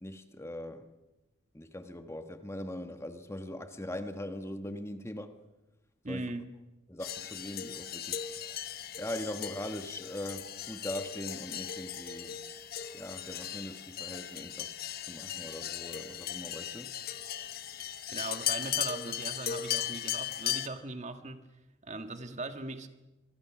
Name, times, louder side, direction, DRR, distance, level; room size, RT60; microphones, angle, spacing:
voice 1, 0.0-0.9 1.5-5.4 6.1-6.3 6.9-8.4 9.0-12.4 12.9-17.0, left 1 dB, 15° left, 1.3 m, -41 dB
voice 2, 6.0-6.5 17.8-21.5 21.8-22.9, right 2 dB, 35° right, 1.6 m, -39 dB
sound 1, 7.0-20.7, left 10 dB, 50° left, 1.1 m, -37 dB
26.5 x 23.5 x 6.1 m
head